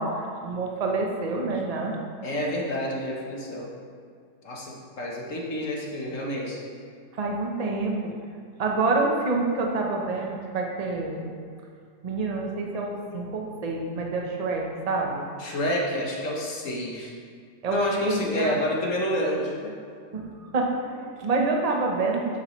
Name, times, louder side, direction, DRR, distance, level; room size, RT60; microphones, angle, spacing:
voice 1, 0.0-2.0 7.2-8.1 8.6-11.3 12.0-15.3 17.6-18.6 20.1-22.2, right 3 dB, 35° right, 0 dB, 0.6 m, -27 dB
voice 2, 2.2-3.7 4.4-6.6 15.4-17.1 17.7-19.7, left 1 dB, 50° left, -2 dB, 1.4 m, -28 dB
9.1 x 7.6 x 3.2 m, 2.1 s
omnidirectional pair, 1.9 m